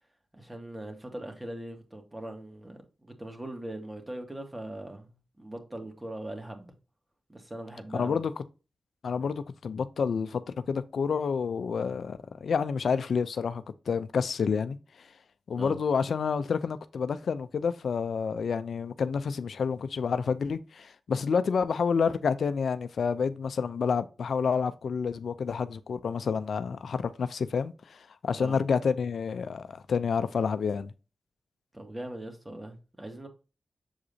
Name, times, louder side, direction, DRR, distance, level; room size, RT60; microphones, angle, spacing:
voice 1, 0.3-6.7 7.3-8.2 15.5-15.8 28.4-28.6 31.7-33.3, right 1 dB, 20° right, 2.1 m, -40 dB
voice 2, 7.9-8.3 9.0-10.4 10.7-15.1 15.5-30.9, left 6 dB, 80° left, 0.5 m, -29 dB
7.2 x 4.9 x 2.7 m
cardioid pair, 45°, 0 cm